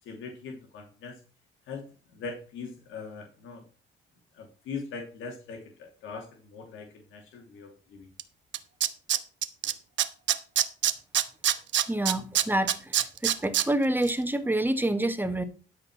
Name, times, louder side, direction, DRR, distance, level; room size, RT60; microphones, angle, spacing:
voice 1, 0.0-1.2 1.6-3.7 4.3-8.1 10.0-10.2, left 4 dB, 85° left, 2 dB, 2.6 m, -41 dB
Tools, 8.2-8.3 8.5-9.7 10.0-13.6 14.0-14.1, right 11 dB, 70° right, 1.0 m, -24 dB
voice 2, 11.9-12.7 13.2-15.4, right 1 dB, 10° right, 9 dB, 1.6 m, -27 dB
13.0 x 5.2 x 6.0 m, 0.35 s
cardioid pair, 90°, 20 cm